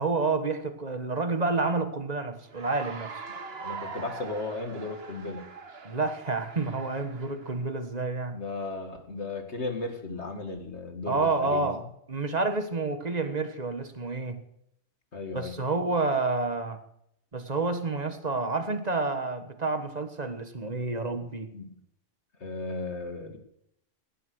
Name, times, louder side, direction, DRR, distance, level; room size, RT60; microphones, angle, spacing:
voice 1, 0.0-3.1 5.8-8.4 11.1-11.8 12.1-14.4 15.3-16.8 17.3-21.5, right 3 dB, 35° right, 9 dB, 1.6 m, -29 dB
Cheering / Applause, 2.5-7.6, right 5 dB, 55° right, 1.6 m, -42 dB
voice 2, 3.3-5.5 8.3-11.7 15.1-15.5 21.5-21.7 22.4-23.4, left 3 dB, 60° left, 6 dB, 2.7 m, -35 dB
18.0 x 11.5 x 6.4 m, 0.75 s
omnidirectional pair, 1.3 m